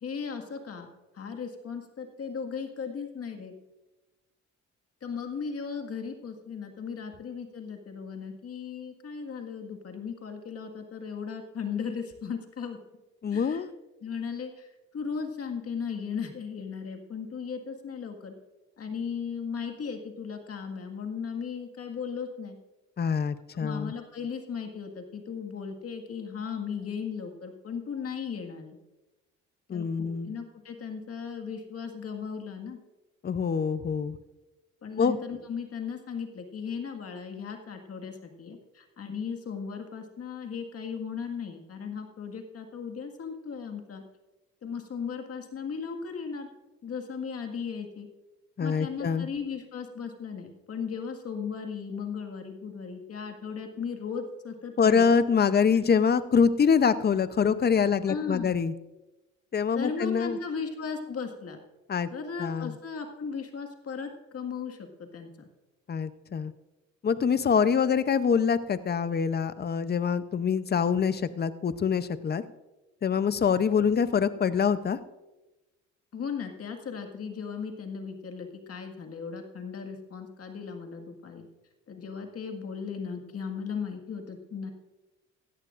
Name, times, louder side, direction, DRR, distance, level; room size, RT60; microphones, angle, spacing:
voice 1, 0.0-3.5 5.0-12.8 13.3-13.6 14.0-18.3 18.8-22.6 23.5-28.8 29.7-32.8 34.8-44.0 44.6-46.5 46.8-48.1 48.6-55.0 58.1-58.5 59.8-61.6 62.1-65.5 76.1-81.5 81.9-84.7, left 6 dB, 50° left, 4 dB, 1.9 m, -36 dB
voice 2, 13.2-13.7 23.0-23.9 29.7-30.3 33.2-34.2 35.0-35.2 48.6-49.3 54.8-58.7 59.5-60.4 61.9-62.1 62.4-62.7 65.9-66.5 67.0-72.4 73.0-75.0, left 6 dB, 35° left, 14 dB, 0.7 m, -25 dB
17.0 x 13.5 x 2.6 m, 1.1 s
cardioid pair, 90°, 30 cm